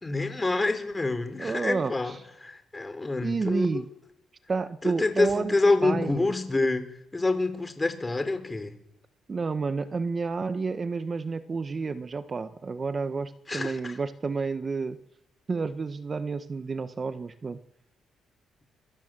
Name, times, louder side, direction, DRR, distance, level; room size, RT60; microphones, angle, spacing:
voice 1, 0.0-3.8 4.8-6.9 7.1-8.8 13.5-14.0, left 2 dB, 20° left, 10 dB, 3.8 m, -27 dB
voice 2, 1.4-2.2 3.2-3.9 4.5-5.6 5.8-6.3 9.3-15.0 15.5-17.6, right 4 dB, 35° right, 12 dB, 1.1 m, -30 dB
26.0 x 22.0 x 7.6 m, 0.87 s
cardioid pair, 90°, 0 cm